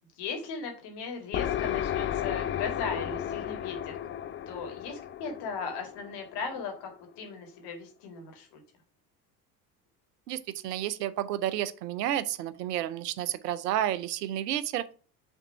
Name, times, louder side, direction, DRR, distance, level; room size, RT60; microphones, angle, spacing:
voice 1, 0.1-4.0 4.5-8.6, left 5 dB, 55° left, 3 dB, 2.1 m, -37 dB
sound 1, 1.3-6.9, left 11 dB, 25° left, 0.5 m, -33 dB
voice 2, 10.3-14.8, right 12 dB, 75° right, 16 dB, 0.6 m, -31 dB
5.8 x 3.5 x 5.6 m, 0.40 s
figure-of-eight pair, 60°, 48 cm